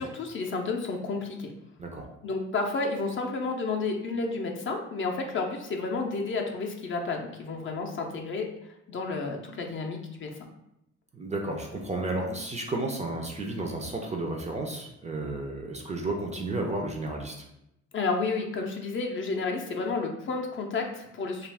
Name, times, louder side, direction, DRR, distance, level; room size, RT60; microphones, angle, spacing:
voice 1, 0.0-1.5 2.2-8.5 8.9-10.3 17.9-21.5, left 3 dB, 40° left, 2 dB, 0.5 m, -31 dB
voice 2, 11.1-17.4, right 2 dB, 25° right, 1 dB, 0.4 m, -32 dB
2.4 x 2.3 x 3.3 m, 0.83 s
cardioid pair, 90°, 30 cm